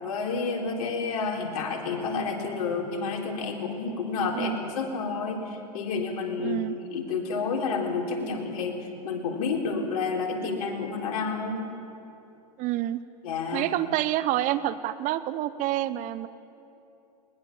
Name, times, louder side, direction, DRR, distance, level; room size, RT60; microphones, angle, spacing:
voice 1, 0.0-6.6 6.9-11.6 13.2-13.6, left 4 dB, 65° left, 1 dB, 3.9 m, -30 dB
voice 2, 6.4-6.8 12.6-13.0 13.5-16.3, right 14 dB, 40° right, 14 dB, 0.9 m, -28 dB
20.5 x 20.5 x 7.3 m, 2.7 s
hypercardioid pair, 115°, 21 cm